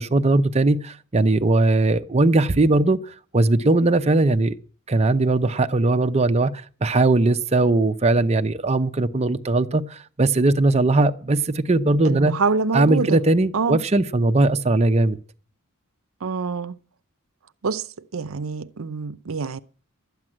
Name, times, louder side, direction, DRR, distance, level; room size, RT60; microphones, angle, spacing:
voice 1, 0.0-4.5 4.9-6.5 6.8-12.3 12.7-15.2, right 2 dB, 30° right, 0.7 m, -19 dB
voice 2, 12.0-13.2 13.5-13.8 16.2-16.8 17.6-17.8 18.1-19.6, right 4 dB, 70° right, 0.6 m, -25 dB
12.5 x 9.3 x 7.4 m
head